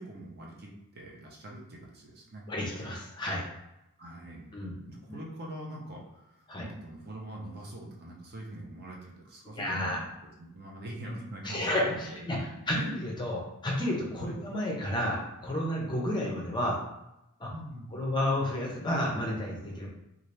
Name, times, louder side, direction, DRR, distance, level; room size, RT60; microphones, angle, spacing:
voice 1, 0.0-2.4 4.0-4.5 4.8-10.1 10.4-11.8 12.0-12.3 12.7-12.9 14.2-14.3 17.5-18.0, right 1 dB, 45° right, -2 dB, 0.7 m, -43 dB
voice 2, 2.5-3.4 4.5-4.7 5.1-5.2 6.5-6.6 9.6-10.0 11.4-12.8 13.0-16.8 17.4-17.5 17.9-19.9, left 1 dB, 20° left, -2 dB, 0.6 m, -31 dB
2.8 x 2.4 x 3.2 m, 0.89 s
head